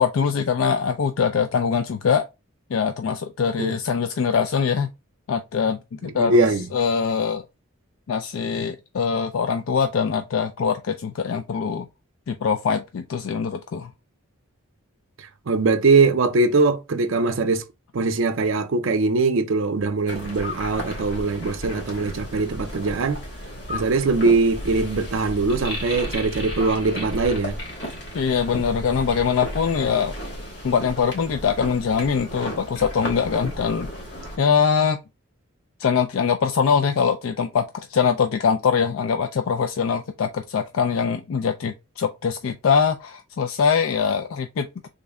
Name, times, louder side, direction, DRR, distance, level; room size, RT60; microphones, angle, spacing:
voice 1, 0.0-2.2 2.7-4.9 5.3-6.5 6.7-7.4 8.1-11.9 12.3-13.9 28.1-30.1 30.6-33.9 34.4-35.0 35.8-44.9, left 6 dB, 70° left, 0.3 m, -23 dB
voice 2, 6.0-6.7 15.2-17.7 17.9-23.2 23.7-27.6, right 3 dB, 65° right, 0.5 m, -21 dB
sound 1, 20.1-34.4, equal, 55° left, 1.4 m, -34 dB
3.7 x 2.1 x 3.4 m
head